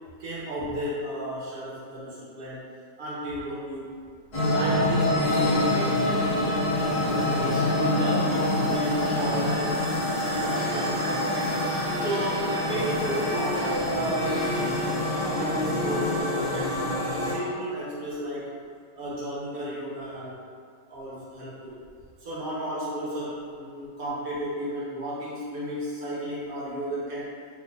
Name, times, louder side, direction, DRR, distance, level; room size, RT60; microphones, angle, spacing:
voice 1, 0.2-2.6 3.0-3.9 4.5-6.7 7.0-9.8 10.4-11.4 11.9-14.6 15.2-16.9 17.2-18.5 18.9-20.4 20.9-21.8 22.2-27.3, right 1 dB, 70° right, -8 dB, 0.5 m, -33 dB
sound 1, 4.3-17.3, left 1 dB, 55° left, 1.1 m, -26 dB
sound 2, 6.7-16.2, left 2 dB, 80° left, 1.3 m, -33 dB
3.5 x 2.1 x 3.9 m, 2.2 s
omnidirectional pair, 2.0 m